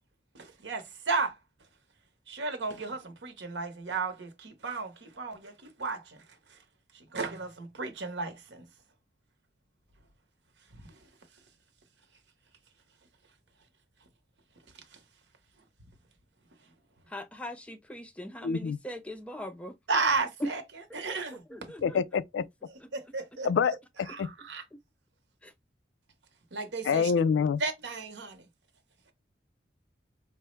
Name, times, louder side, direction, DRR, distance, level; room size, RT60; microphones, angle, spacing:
voice 1, 0.3-1.4 2.3-6.2 6.5-6.6 6.9-8.6 10.7-10.9 14.9-15.0 19.9-20.6 20.9-21.4 22.9-23.5 24.1-24.6 26.5-27.1 27.6-28.4, right 4 dB, 75° right, 0.8 m, -34 dB
voice 2, 17.1-19.8 20.4-20.5 20.9-22.0 22.8-22.9 24.7-24.8 25.4-25.5, equal, 5° left, 0.3 m, -40 dB
voice 3, 18.4-18.8 21.8-22.4 23.4-23.8 24.2-24.3 26.8-27.6, left 6 dB, 85° left, 0.3 m, -26 dB
4.5 x 2.0 x 3.1 m
head